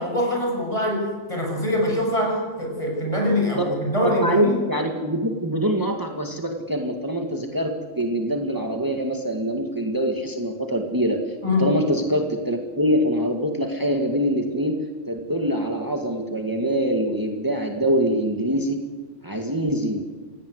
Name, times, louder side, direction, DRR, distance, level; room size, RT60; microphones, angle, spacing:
voice 1, 0.0-4.5 11.4-11.7, left 1 dB, 10° left, 1 dB, 7.2 m, -23 dB
voice 2, 4.0-11.2 11.6-14.8 15.1-18.8 19.2-20.0, equal, 15° right, 3 dB, 0.7 m, -24 dB
27.0 x 17.5 x 8.2 m, 1.4 s
omnidirectional pair, 4.0 m